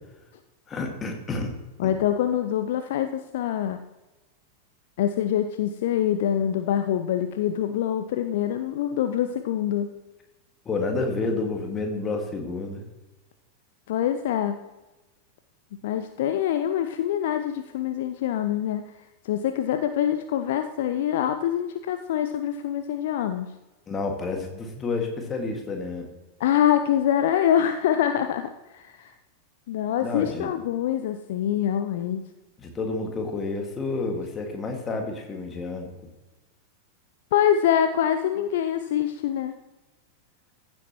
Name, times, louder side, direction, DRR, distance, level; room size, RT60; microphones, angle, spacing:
voice 1, 0.7-1.5 1.8-1.9 10.7-12.8 23.9-26.1 30.0-30.5 32.6-35.9, left 3 dB, 20° left, 3 dB, 1.9 m, -29 dB
voice 2, 1.8-3.8 5.0-9.9 13.9-14.6 15.8-18.9 19.2-23.5 26.4-29.1 29.7-32.2 37.3-39.5, left 10 dB, 55° left, 8 dB, 0.5 m, -25 dB
15.0 x 7.6 x 3.0 m, 1.1 s
figure-of-eight pair, 90°, 0 cm